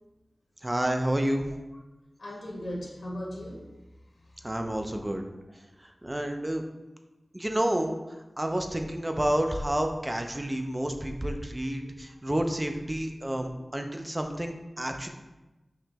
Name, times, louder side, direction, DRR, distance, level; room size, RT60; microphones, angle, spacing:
voice 1, 0.6-1.5 4.4-5.2 5.8-6.6 7.3-8.0 8.4-15.1, right 1 dB, 20° right, 5 dB, 0.4 m, -29 dB
voice 2, 2.2-3.7 4.1-4.5 11.8-11.9 13.2-13.3, equal, 75° left, -2 dB, 0.8 m, -38 dB
5.4 x 3.0 x 2.8 m, 1.1 s
wide cardioid pair, 80°, 0 cm